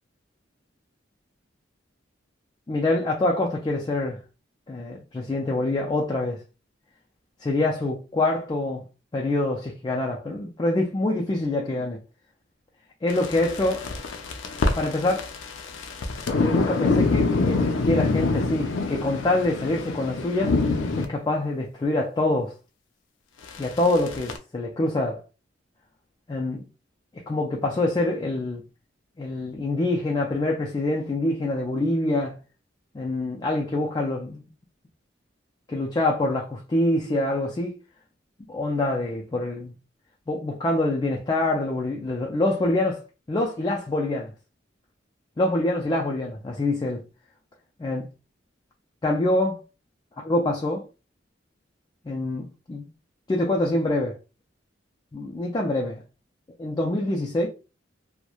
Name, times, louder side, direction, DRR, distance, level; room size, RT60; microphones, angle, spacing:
voice 1, 2.7-4.2 4.7-6.4 7.4-8.8 9.1-12.0 13.0-13.9 14.8-15.3 16.4-20.6 21.0-22.5 23.6-25.2 26.3-26.7 27.1-28.6 29.2-32.4 32.9-34.5 35.7-37.8 38.5-39.7 40.3-44.3 45.4-47.0 47.8-48.1 49.0-49.6 50.2-50.9 52.1-52.9 53.3-54.2 55.1-56.0 56.6-57.5, left 2 dB, 20° left, 0.3 m, -25 dB
sound 1, 13.1-21.1 23.5-24.4, left 3 dB, 85° left, 0.5 m, -25 dB
2.9 x 2.1 x 2.3 m
head